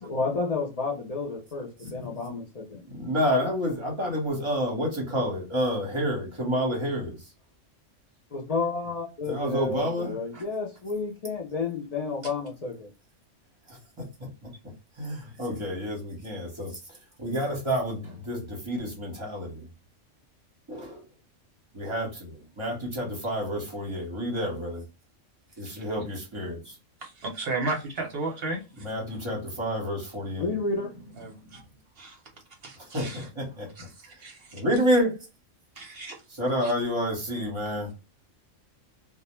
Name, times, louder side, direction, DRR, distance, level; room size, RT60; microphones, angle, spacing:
voice 1, 0.0-2.8 8.3-12.9 26.6-26.7 30.4-30.9, left 3 dB, 60° left, 0.4 m, -31 dB
voice 2, 1.9-2.4 2.9-7.2 9.2-10.1 13.7-13.8 15.0-16.8 17.2-19.7 20.7-21.0 21.7-24.8 25.6-26.6 28.8-30.5 32.9-33.7 34.5-35.2 36.3-37.9, equal, 25° right, 0.9 m, -29 dB
voice 3, 27.0-28.8 31.2-31.6 32.0-32.2 32.6-33.3 33.8-33.9 34.2-34.6 35.8-36.2 36.6-36.7, right 2 dB, 55° right, 0.8 m, -34 dB
2.2 x 2.1 x 2.9 m
omnidirectional pair, 1.3 m